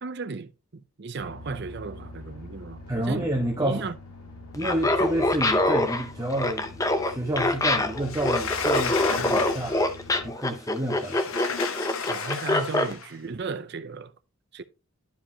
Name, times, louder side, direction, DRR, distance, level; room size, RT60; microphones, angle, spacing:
voice 1, 0.0-3.3 3.6-4.0 12.1-14.1 14.5-14.6, right 4 dB, 50° right, 0.6 m, -35 dB
sound 1, 1.2-10.3, left 2 dB, 90° left, 1.8 m, -44 dB
voice 2, 2.9-3.8 4.5-6.7 7.0-9.9 10.2-11.4, right 1 dB, 15° right, 1.1 m, -29 dB
Laughter, 4.5-12.9, left 1 dB, 15° left, 0.6 m, -25 dB
Sliding door, 8.0-10.0 10.9-13.1, left 6 dB, 70° left, 0.9 m, -32 dB
11.5 x 5.1 x 2.8 m
head